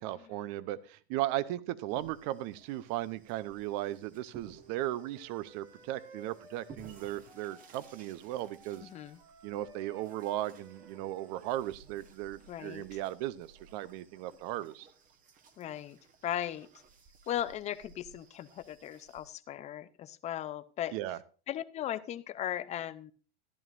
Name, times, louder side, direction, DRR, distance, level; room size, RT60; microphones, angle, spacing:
voice 1, 0.0-8.9 9.4-14.9 20.9-21.2, right 14 dB, 45° right, 17 dB, 0.7 m, -36 dB
sound 1, 1.9-19.3, right 5 dB, 25° right, 1.2 m, -58 dB
Wind instrument woodwind instrument, 4.5-8.0 8.2-11.8, right 3 dB, 85° right, 3.5 m, -56 dB
voice 2, 8.8-9.2 12.5-13.0 15.6-16.7 17.3-20.9 21.5-23.1, left 11 dB, 20° left, 13 dB, 0.5 m, -37 dB
14.0 x 11.0 x 2.5 m, 0.38 s
supercardioid pair, 140°, 31 cm